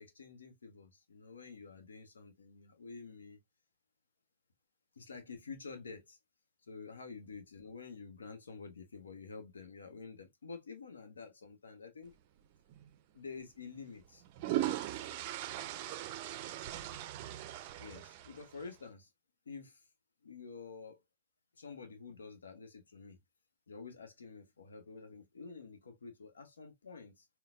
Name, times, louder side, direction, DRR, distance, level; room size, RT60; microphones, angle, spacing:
voice 1, 0.0-3.4 5.0-6.2 6.7-12.1 13.1-14.2 17.8-19.1 19.5-19.8 20.2-21.0 21.6-23.2 23.7-27.2, left 4 dB, 85° left, 0.8 m, -49 dB
sound 1, 12.7-12.9 14.0-18.7, right 13 dB, 50° right, 0.4 m, -39 dB
4.0 x 2.2 x 2.4 m
hypercardioid pair, 110°, 0 cm